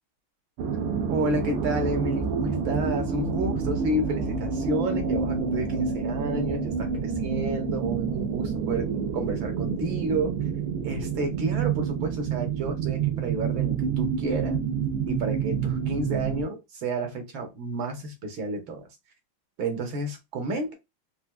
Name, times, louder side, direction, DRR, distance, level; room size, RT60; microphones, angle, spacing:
sound 1, 0.6-16.5, right 6 dB, 85° right, 1.5 m, -28 dB
voice 1, 1.1-8.9 9.1-10.4 10.8-14.6 15.1-18.9 19.6-20.7, right 2 dB, 65° right, 4 dB, 1.6 m, -30 dB
4.5 x 2.3 x 2.2 m, 0.22 s
omnidirectional pair, 2.4 m